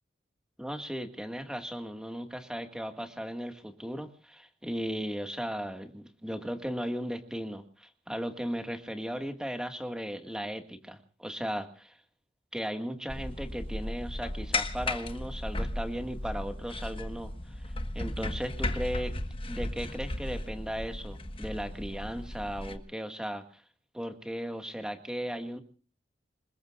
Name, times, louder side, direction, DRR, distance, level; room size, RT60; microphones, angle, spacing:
voice 1, 0.6-11.9 12.5-17.3 17.9-19.1 19.5-23.6 23.9-25.6, equal, 5° right, 6 dB, 1.9 m, -36 dB
sound 1, 13.1-22.8, left 2 dB, 30° left, 1.4 m, -35 dB
28.0 x 20.5 x 2.5 m, 0.38 s
head